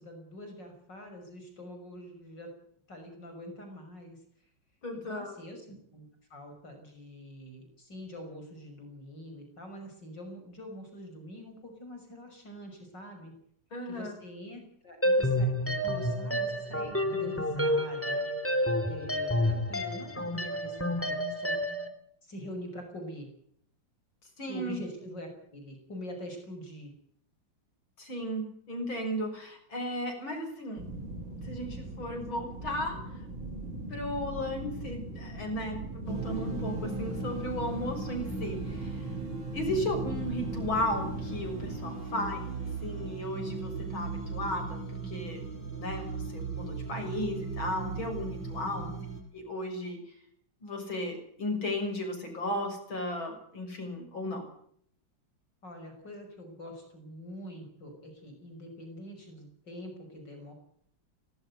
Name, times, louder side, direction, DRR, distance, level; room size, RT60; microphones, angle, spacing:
voice 1, 0.0-2.5 2.9-4.2 4.9-6.0 6.3-13.3 13.9-18.2 18.8-21.5 22.2-23.3 24.5-26.9 48.7-49.0 55.6-60.5, equal, 60° left, 4 dB, 6.6 m, -45 dB
voice 2, 4.8-5.3 13.7-14.1 24.4-24.8 28.0-30.8 31.4-33.0 33.9-39.1 39.5-48.9 49.3-50.0 50.6-54.4, left 1 dB, 85° left, 4 dB, 7.5 m, -35 dB
sound 1, 15.0-21.9, equal, 5° left, 2.7 m, -29 dB
sound 2, 30.8-41.9, right 1 dB, 90° right, 6.0 m, -40 dB
sound 3, 36.1-49.2, right 4 dB, 65° right, 5.9 m, -37 dB
19.5 x 18.5 x 8.3 m, 0.65 s
omnidirectional pair, 2.1 m